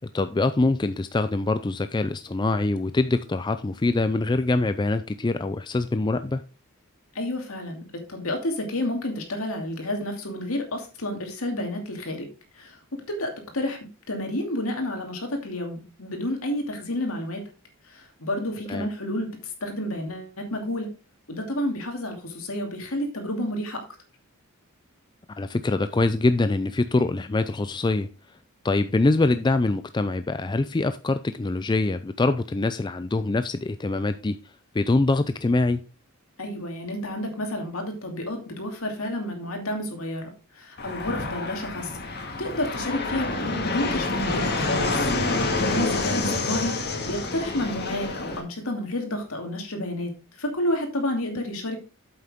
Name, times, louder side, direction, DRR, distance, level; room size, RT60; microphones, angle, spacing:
voice 1, 0.1-6.4 18.7-18.9 25.4-28.1 28.6-34.4 34.7-35.8 46.3-46.4, left 2 dB, 20° left, 0.4 m, -24 dB
voice 2, 7.1-12.3 12.5-13.8 14.1-17.5 17.8-20.9 21.3-23.8 36.4-42.0 42.4-46.8 47.1-51.8, left 1 dB, 70° left, 2.6 m, -30 dB
Fixed-wing aircraft airplane, 40.8-48.4, left 3 dB, 45° left, 2.0 m, -27 dB
8.4 x 7.9 x 3.6 m
head